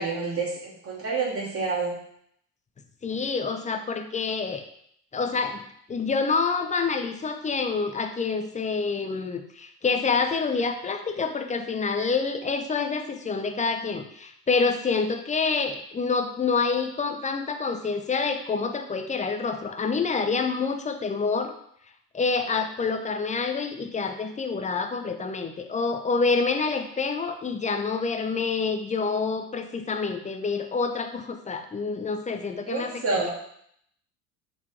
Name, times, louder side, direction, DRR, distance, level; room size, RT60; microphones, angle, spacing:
voice 1, 0.0-1.9 32.7-33.3, right 4 dB, 30° right, -4 dB, 2.6 m, -28 dB
voice 2, 3.0-4.6 5.1-5.6 5.9-21.5 22.1-33.3, left 4 dB, 15° left, 6 dB, 0.7 m, -27 dB
7.2 x 4.1 x 4.7 m, 0.69 s
figure-of-eight pair, 70°, 47 cm